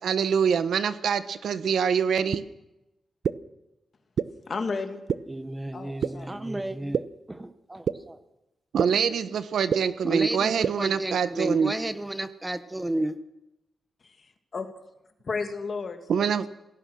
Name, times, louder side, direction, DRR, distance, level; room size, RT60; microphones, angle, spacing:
voice 1, 0.0-2.4 8.7-11.7 16.1-16.5, right 7 dB, 80° right, 12 dB, 1.3 m, -25 dB
sound 1, 2.3-2.4 3.2-3.3 4.2-4.3 5.1-5.2 6.0-6.1 6.9-7.0 7.9-8.0 8.8-8.9 9.7-9.8 10.6-10.7, right 7 dB, 65° right, 0.8 m, -24 dB
voice 2, 4.5-5.0 5.7-6.4 14.0-14.7 15.2-16.5, left 4 dB, 40° left, 6 dB, 2.2 m, -33 dB
voice 3, 5.3-7.0 7.3-8.2 10.0-13.1, right 1 dB, 10° right, 10 dB, 1.0 m, -32 dB
27.5 x 18.0 x 6.4 m, 0.93 s
wide cardioid pair, 170°, 0 cm